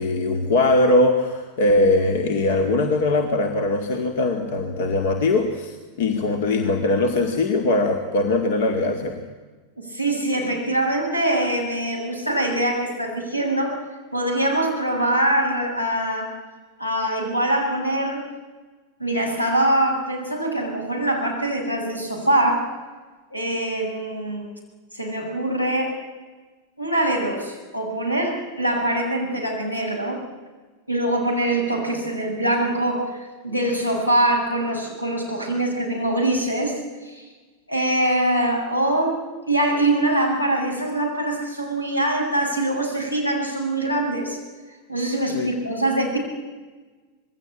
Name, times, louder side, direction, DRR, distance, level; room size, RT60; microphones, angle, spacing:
voice 1, 0.0-9.2 45.3-45.5, left 2 dB, 55° left, 6 dB, 2.2 m, -21 dB
voice 2, 9.8-13.8 14.1-16.3 16.8-18.2 19.0-22.7 23.3-24.5 24.9-26.0 26.8-30.2 30.9-37.2 37.7-44.4 44.9-46.2, right 1 dB, 85° left, 2 dB, 7.0 m, -23 dB
26.5 x 21.0 x 8.7 m, 1.3 s
figure-of-eight pair, 90°, 0 cm